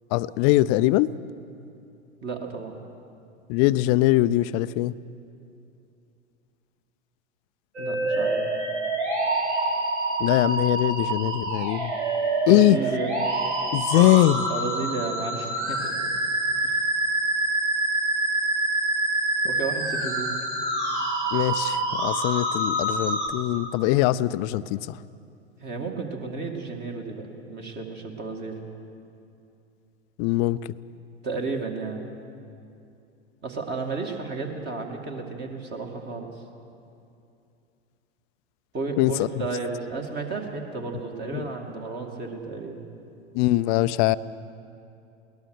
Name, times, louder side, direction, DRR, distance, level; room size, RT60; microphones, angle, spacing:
voice 1, 0.1-1.1 3.5-4.9 10.2-11.9 12.5-12.8 13.7-14.4 21.3-24.9 30.2-30.6 39.0-39.3 41.3-41.5 43.3-44.2, left 16 dB, 35° left, 16 dB, 0.5 m, -22 dB
voice 2, 2.2-2.8 7.8-8.4 12.4-13.2 14.0-14.1 14.5-16.1 16.6-16.8 19.4-20.3 25.6-28.6 31.2-32.0 33.4-36.4 38.7-42.8, right 4 dB, 30° right, 2 dB, 2.4 m, -32 dB
sound 1, 7.7-23.3, right 2 dB, 70° right, 4.3 m, -26 dB
21.5 x 19.0 x 6.5 m, 2.6 s
figure-of-eight pair, 85°, 35 cm